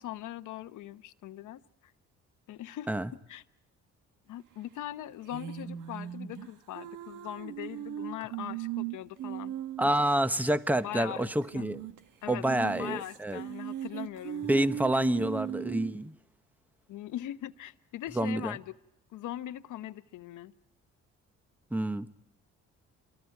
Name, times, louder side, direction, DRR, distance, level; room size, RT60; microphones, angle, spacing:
voice 1, 0.0-1.9 2.5-2.9 3.3-3.4 4.3-9.5 10.8-11.6 12.2-14.7 16.9-18.7 19.1-20.5, left 13 dB, 80° left, 1.0 m, -41 dB
sound 1, 5.3-10.2 10.4-10.5 10.7-10.8 11.4-12.0 12.3-16.0, right 11 dB, 85° right, 1.7 m, -38 dB
voice 2, 9.8-11.8 12.3-13.4 14.5-16.1 18.2-18.6 21.7-22.1, right 1 dB, 5° right, 1.0 m, -28 dB
28.0 x 23.5 x 4.7 m
cardioid pair, 90°, 30 cm